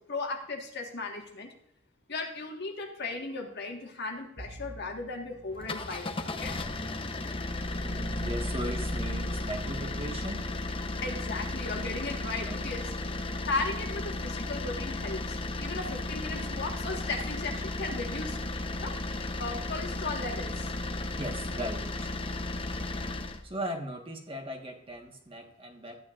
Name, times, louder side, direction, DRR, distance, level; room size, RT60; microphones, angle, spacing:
voice 1, 0.1-1.5 2.1-6.6 11.0-12.9 13.4-18.4 18.8-18.9 19.4-20.7, left 3 dB, 55° left, 3 dB, 1.6 m, -36 dB
Bowed string instrument, 4.4-9.5, right 1 dB, 60° right, 1.2 m, -52 dB
sound 1, 5.5-23.4, left 2 dB, 25° left, 0.8 m, -34 dB
voice 2, 7.8-10.5 12.4-12.7 21.1-22.2 23.4-26.0, right 1 dB, 25° right, 2 dB, 1.5 m, -38 dB
13.5 x 9.4 x 2.5 m, 0.74 s
head